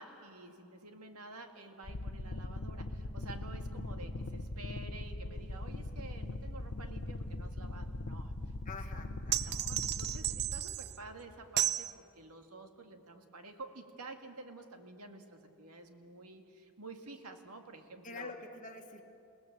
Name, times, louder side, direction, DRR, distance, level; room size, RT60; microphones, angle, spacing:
voice 1, 0.0-8.3 9.4-18.3, right 2 dB, 90° right, 5 dB, 2.0 m, -50 dB
sound 1, 1.8-10.6, left 1 dB, 60° left, 0.9 m, -40 dB
voice 2, 8.7-9.6 18.0-19.0, left 4 dB, 35° left, 4 dB, 1.8 m, -46 dB
sound 2, 9.3-11.0 11.6-11.9, right 13 dB, 50° right, 0.5 m, -33 dB
28.5 x 19.0 x 7.3 m, 2.7 s
head